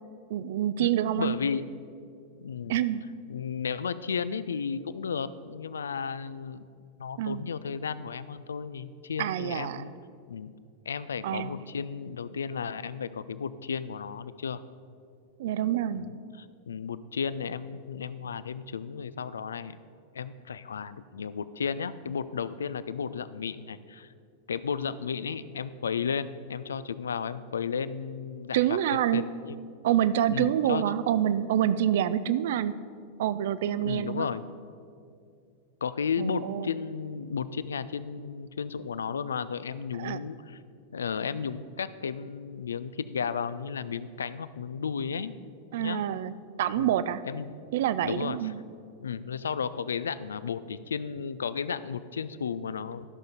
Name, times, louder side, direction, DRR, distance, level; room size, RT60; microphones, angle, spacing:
voice 1, 0.3-1.4 2.7-3.0 7.2-7.4 9.2-9.8 11.2-11.5 15.4-16.0 28.5-29.3 29.8-32.8 33.2-34.3 36.2-36.7 40.0-40.2 45.7-47.2 47.7-48.6, right 11 dB, 55° right, 15 dB, 0.4 m, -27 dB
voice 2, 1.1-1.6 2.4-2.8 3.3-6.7 7.0-9.9 10.3-10.5 10.9-14.6 15.9-19.8 20.1-24.1 24.5-28.6 29.1-29.6 30.3-30.8 33.8-34.5 35.8-40.6 40.9-45.3 45.8-46.0 46.8-47.0 47.2-47.6 48.0-48.4 49.0-53.1, left 6 dB, 70° left, 15 dB, 0.4 m, -33 dB
12.0 x 6.4 x 5.3 m, 2.3 s
figure-of-eight pair, 90°, 0 cm